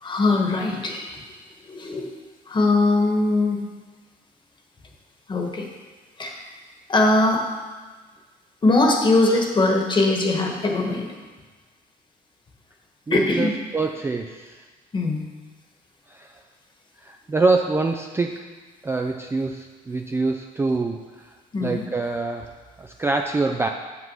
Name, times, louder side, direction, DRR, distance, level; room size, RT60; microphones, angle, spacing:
voice 1, 0.0-1.1 1.7-2.1 2.5-3.7 5.3-5.7 6.2-6.5 6.9-7.5 8.6-11.1 13.1-13.6 14.9-15.2 21.5-21.8, left 2 dB, 30° left, 2 dB, 1.4 m, -21 dB
voice 2, 13.1-14.7 16.1-16.4 17.0-18.5 18.8-21.3 21.6-23.7, right 3 dB, 15° right, 4 dB, 0.4 m, -25 dB
7.4 x 6.1 x 5.5 m, 1.3 s
cardioid pair, 110°, 17 cm